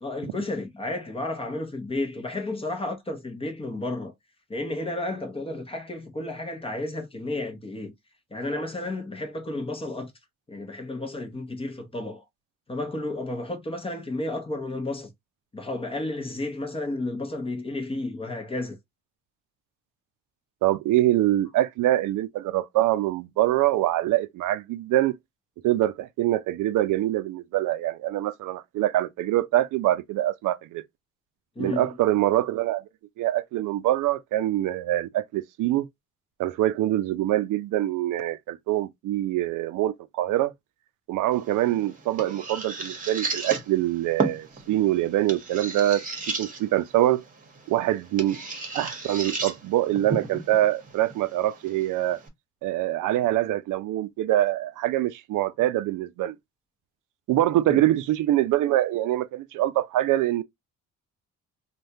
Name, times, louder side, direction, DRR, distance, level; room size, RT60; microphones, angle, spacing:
voice 1, 0.0-4.1 4.5-7.9 8.3-10.1 10.5-12.2 12.7-15.1 15.5-18.8 31.6-31.9 57.7-57.8, left 2 dB, 20° left, 0.7 m, -32 dB
voice 2, 20.6-25.1 25.6-30.8 31.6-32.8 33.2-35.9 36.4-40.5 41.1-47.2 47.7-48.4 48.7-52.2 52.6-56.4 57.3-60.4, right 14 dB, 85° right, 0.5 m, -24 dB
sound 1, 41.3-52.3, right 3 dB, 25° right, 1.0 m, -35 dB
3.4 x 2.3 x 2.7 m
cardioid pair, 125°, 30 cm